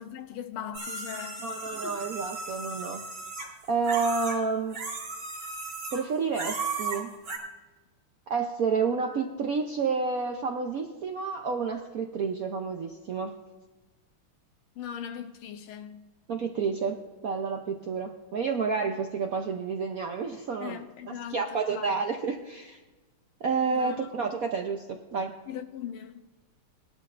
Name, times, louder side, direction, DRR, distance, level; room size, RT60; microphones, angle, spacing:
voice 1, 0.0-2.0 14.8-16.1 20.6-21.9 23.7-24.1 25.5-26.2, left 9 dB, 80° left, 1.7 m, -40 dB
sound 1, 0.7-4.4 4.7-6.1 6.3-7.4, right 3 dB, 85° right, 4.0 m, -36 dB
voice 2, 1.4-3.0 3.7-4.8 5.9-7.1 8.3-13.4 16.3-22.8 23.4-25.3, right 5 dB, 70° right, 0.8 m, -30 dB
19.0 x 12.0 x 2.5 m
omnidirectional pair, 2.4 m